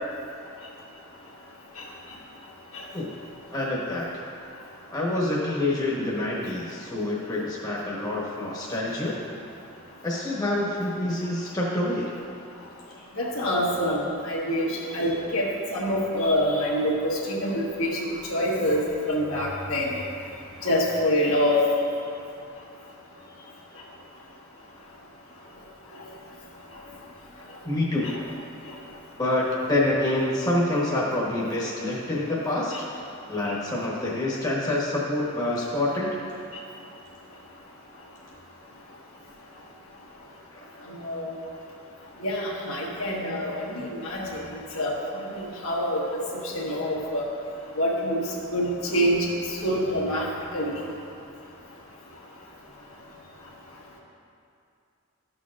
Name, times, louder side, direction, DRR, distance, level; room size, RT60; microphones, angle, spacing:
voice 1, 3.5-4.1 4.9-9.2 10.0-12.1 13.0-13.1 27.6-28.1 29.2-32.7 33.3-36.2 40.5-40.7, left 1 dB, 20° left, -6 dB, 1.1 m, -27 dB
voice 2, 13.2-15.5 15.7-18.0 18.3-19.9 20.6-21.6 28.0-28.2 41.0-41.3 42.2-44.4 44.7-44.9 45.3-46.2 46.5-47.3 47.8-48.2 48.5-49.2 49.5-50.3 50.5-50.8, equal, 70° left, -4 dB, 1.4 m, -26 dB
12.5 x 6.4 x 2.5 m, 2.6 s
head